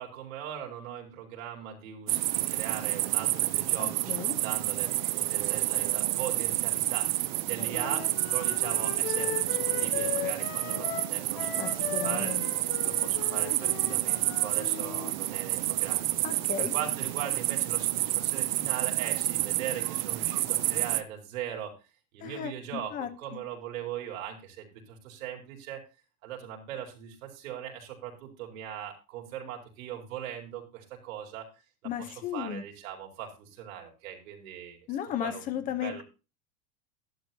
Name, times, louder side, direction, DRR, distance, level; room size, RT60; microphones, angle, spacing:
voice 1, 0.0-12.3 12.8-21.7 22.1-25.8 26.2-31.5 31.8-34.9 35.2-36.0, right 9 dB, 70° right, 4.5 m, -40 dB
sound 1, 2.1-21.0, right 16 dB, 35° right, 0.5 m, -29 dB
voice 2, 3.8-4.3 11.6-12.4 16.2-16.7 22.2-23.4 31.8-32.6 34.9-36.0, left 10 dB, 20° left, 0.9 m, -35 dB
Wind instrument woodwind instrument, 7.7-15.1, left 11 dB, 35° left, 1.7 m, -38 dB
12.0 x 11.5 x 2.8 m
supercardioid pair, 180°, 42 cm